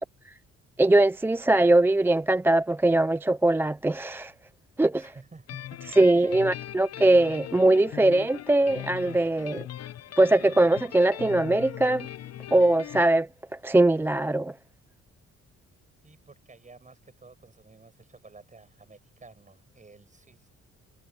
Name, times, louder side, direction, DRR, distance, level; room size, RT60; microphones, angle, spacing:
voice 1, 0.8-4.3 4.8-5.1 6.0-9.7 10.2-12.1 12.5-13.3 13.6-14.5, right 2 dB, 10° right, 0.3 m, -21 dB
voice 2, 4.9-6.5 6.9-7.0 16.0-20.5, right 3 dB, 25° right, 7.5 m, -51 dB
sound 1, 5.5-13.0, left 11 dB, 55° left, 0.8 m, -40 dB
cardioid pair, 90°, 30 cm